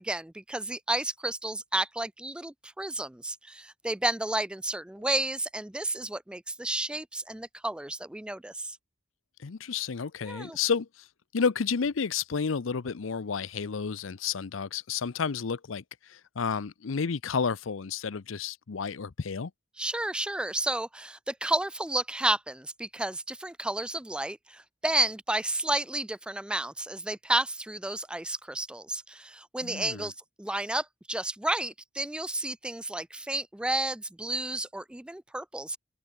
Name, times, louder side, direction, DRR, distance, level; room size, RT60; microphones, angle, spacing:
voice 1, 0.0-8.8 10.3-10.6 19.8-30.1 30.4-35.8, right 1 dB, 5° right, 0.3 m, -31 dB
voice 2, 9.4-11.1 11.3-19.5 29.6-30.1, left 5 dB, 85° left, 0.6 m, -31 dB
head